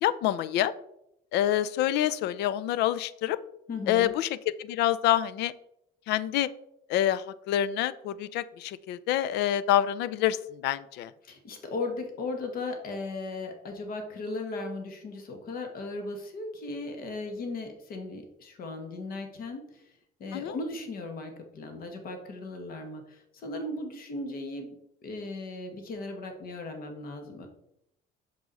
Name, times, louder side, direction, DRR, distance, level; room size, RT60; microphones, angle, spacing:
voice 1, 0.0-0.7 1.3-3.4 3.9-4.3 4.6-5.5 6.1-6.5 6.9-10.4 10.6-11.1 20.3-20.5, left 12 dB, 80° left, 16 dB, 0.5 m, -26 dB
voice 2, 3.7-4.1 11.2-19.9 20.2-24.7 25.0-27.5, left 2 dB, 60° left, 4 dB, 1.6 m, -37 dB
7.1 x 6.3 x 4.0 m, 0.78 s
cardioid pair, 110°, 17 cm